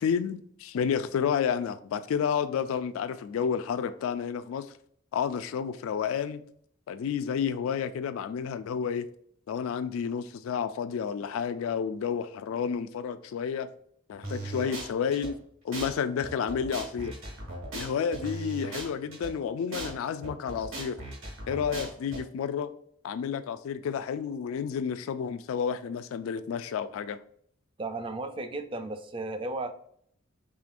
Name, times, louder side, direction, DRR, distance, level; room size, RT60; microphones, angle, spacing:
voice 1, 0.0-4.7 5.1-6.4 6.9-9.1 9.5-13.7 14.1-15.4 15.6-17.1 17.7-21.0 21.5-22.7 23.0-27.2, left 7 dB, 80° left, 0.3 m, -30 dB
sound 1, 14.2-15.3 15.7-15.9 16.2-19.3 19.7-19.9 20.2-22.2, right 2 dB, 70° right, 1.6 m, -38 dB
voice 2, 27.8-29.7, right 2 dB, 25° right, 0.4 m, -34 dB
4.9 x 2.9 x 2.5 m
head